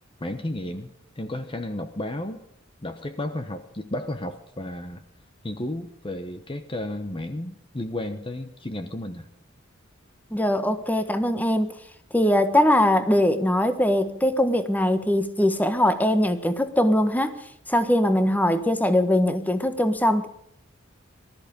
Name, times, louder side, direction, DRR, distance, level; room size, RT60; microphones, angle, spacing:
voice 1, 0.2-2.4 2.8-5.0 5.4-9.3, left 1 dB, 25° left, 8 dB, 1.0 m, -33 dB
voice 2, 10.3-11.7 12.1-17.4 17.7-20.3, left 1 dB, 10° left, 10 dB, 1.3 m, -21 dB
19.5 x 13.5 x 5.2 m, 0.74 s
head